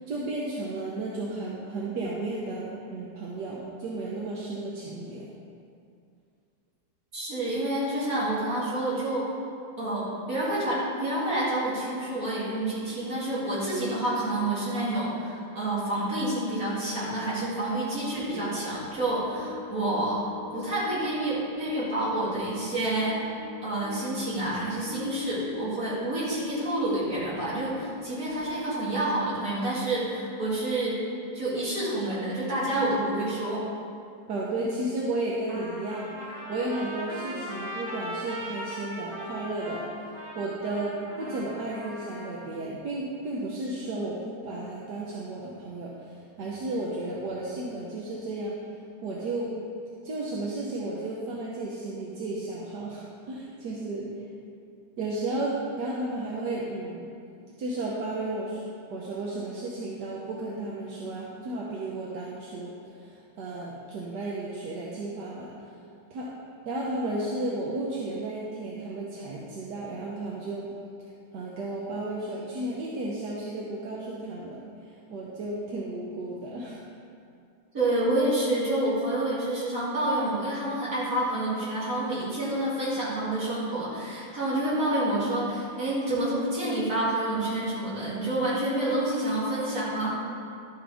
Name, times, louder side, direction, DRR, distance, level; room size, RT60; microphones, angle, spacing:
voice 1, 0.1-5.2 34.3-36.1 36.5-39.8 40.3-48.6 49.0-49.5 50.0-54.1 55.0-57.1 57.6-62.7 63.0-65.5 66.1-66.3 66.7-70.7 71.3-74.6 74.9-76.8, right 2 dB, 60° right, -4 dB, 1.4 m, -33 dB
voice 2, 7.1-9.3 9.8-20.2 20.5-23.2 23.6-31.0 31.3-33.7 77.7-90.2, right 1 dB, 40° right, -8 dB, 3.0 m, -28 dB
sound 1, 18.6-28.6, left 7 dB, 75° left, 1.9 m, -43 dB
Trumpet, 35.5-42.5, equal, 25° right, 2.1 m, -39 dB
12.0 x 8.7 x 3.5 m, 2.4 s
omnidirectional pair, 2.4 m